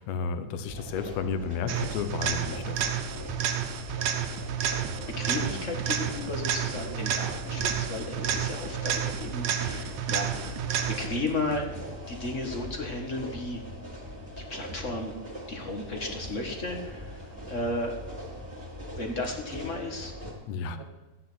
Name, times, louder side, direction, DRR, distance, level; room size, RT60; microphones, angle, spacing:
voice 1, 0.0-3.0 20.5-20.8, left 5 dB, 70° left, 10 dB, 2.1 m, -32 dB
sound 1, 0.7-20.3, equal, 15° right, 3.7 m, -41 dB
sound 2, 1.7-11.3 19.3-19.4, right 8 dB, 70° right, 2.1 m, -31 dB
sound 3, 4.4-12.0, right 9 dB, 90° right, 2.2 m, -44 dB
voice 2, 5.2-11.7 12.1-13.6 14.5-15.1 15.5-17.2 17.5-17.9 18.9-20.1 20.8-20.9, left 2 dB, 35° left, 3 dB, 1.5 m, -34 dB
14.5 x 10.0 x 6.2 m, 1.1 s
omnidirectional pair, 3.3 m